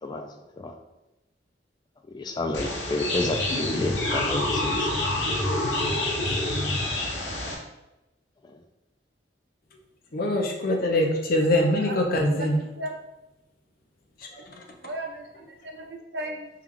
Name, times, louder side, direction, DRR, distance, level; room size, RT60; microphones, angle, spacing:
voice 1, 2.1-4.9, left 2 dB, 25° left, 5 dB, 0.3 m, -30 dB
sound 1, 2.5-7.5, left 1 dB, 80° left, 0.9 m, -27 dB
voice 2, 10.1-12.6 14.3-14.6, left 1 dB, 55° left, 1 dB, 0.7 m, -23 dB
voice 3, 11.4-11.9 12.3-12.5 12.7-12.9 14.8-16.5, right 1 dB, 70° right, 1 dB, 0.7 m, -36 dB
4.7 x 2.3 x 3.6 m, 0.97 s
head